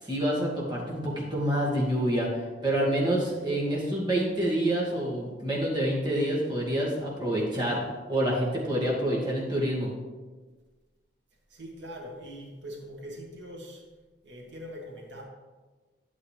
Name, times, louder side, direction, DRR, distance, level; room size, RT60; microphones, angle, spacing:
voice 1, 0.0-7.8 8.1-9.9, right 1 dB, 25° right, -5 dB, 2.3 m, -27 dB
voice 2, 11.5-13.8 14.2-15.2, equal, 85° right, -2 dB, 2.2 m, -42 dB
10.5 x 8.5 x 3.4 m, 1.3 s
head